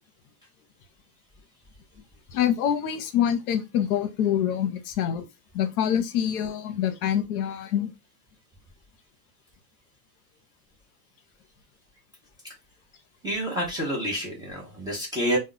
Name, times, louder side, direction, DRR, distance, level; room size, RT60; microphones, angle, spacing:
voice 1, 2.3-5.3 5.5-7.9, left 9 dB, 65° left, 0.7 m, -25 dB
voice 2, 13.2-15.4, equal, 10° right, 0.5 m, -28 dB
2.3 x 2.1 x 3.7 m
supercardioid pair, 150°, 47 cm